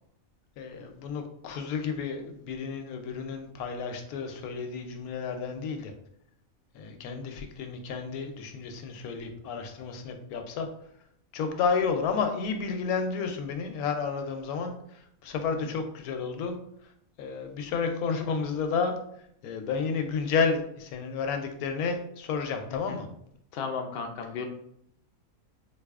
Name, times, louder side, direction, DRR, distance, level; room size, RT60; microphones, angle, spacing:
voice 1, 0.6-5.9 6.7-10.7 11.3-14.7 15.2-16.5 17.2-18.9 19.4-23.1, left 5 dB, 85° left, 5 dB, 1.1 m, -31 dB
voice 2, 22.7-23.0 23.5-24.5, left 5 dB, 70° left, 4 dB, 0.5 m, -34 dB
4.0 x 2.7 x 2.3 m, 0.72 s
omnidirectional pair, 1.5 m